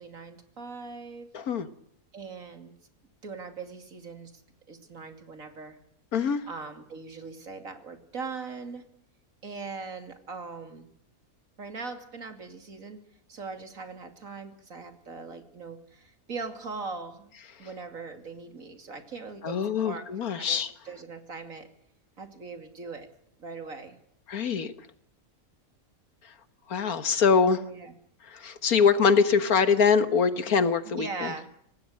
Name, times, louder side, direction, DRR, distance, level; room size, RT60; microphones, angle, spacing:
voice 1, 0.0-1.3 2.1-2.7 3.2-4.3 4.7-5.8 6.5-8.8 9.4-10.9 11.6-13.0 13.3-17.3 17.6-20.1 20.4-20.6 20.8-21.7 22.2-23.1 23.4-24.0 27.5-27.9 30.9-31.5, right 4 dB, 65° right, 6 dB, 3.0 m, -40 dB
voice 2, 1.3-1.7 6.1-6.4 19.4-20.7 24.3-24.7 26.7-27.6 28.3-31.3, left 5 dB, 85° left, 11 dB, 1.9 m, -23 dB
25.5 x 18.5 x 6.5 m, 0.69 s
omnidirectional pair, 1.5 m